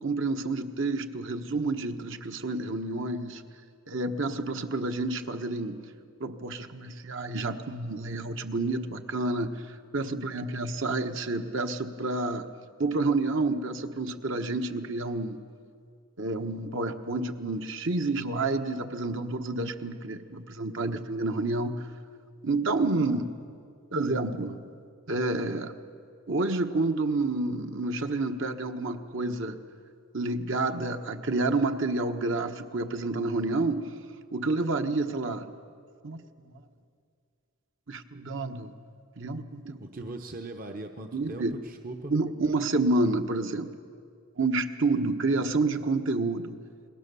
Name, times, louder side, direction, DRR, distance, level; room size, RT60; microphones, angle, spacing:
voice 1, 0.0-3.4 3.9-5.9 6.2-12.5 12.8-15.4 16.2-21.9 22.4-23.4 23.9-24.6 25.1-25.8 26.3-29.6 30.1-34.0 34.3-35.5 36.0-36.2 36.4-36.6 37.9-38.7 39.2-39.8 41.1-41.5 42.1-43.7 44.3-46.6, right 2 dB, 55° right, 6 dB, 1.2 m, -29 dB
voice 2, 39.8-42.1, right 2 dB, 40° right, 5 dB, 1.0 m, -39 dB
29.0 x 21.5 x 6.9 m, 2.3 s
head